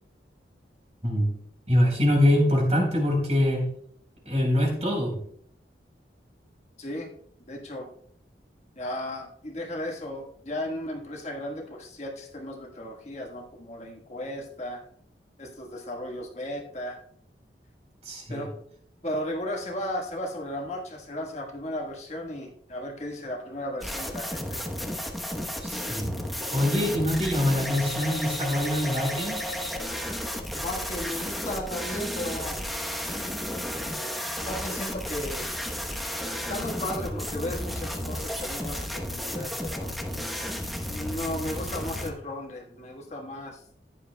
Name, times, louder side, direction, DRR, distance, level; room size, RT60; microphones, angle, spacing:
voice 1, 1.7-3.6 4.3-5.2 18.0-18.5 25.6-26.1 26.5-29.4, left 1 dB, 40° right, 1 dB, 4.0 m, -24 dB
voice 2, 6.8-7.1 7.5-7.9 8.8-14.8 15.4-17.0 18.3-18.5 19.0-24.6 30.5-32.6 34.4-35.5 36.5-39.9 40.9-43.6, left 1 dB, 40° left, 0 dB, 1.4 m, -35 dB
sound 1, 23.8-42.1, equal, ahead, 1.0 m, -33 dB
15.0 x 10.0 x 2.2 m, 0.65 s
head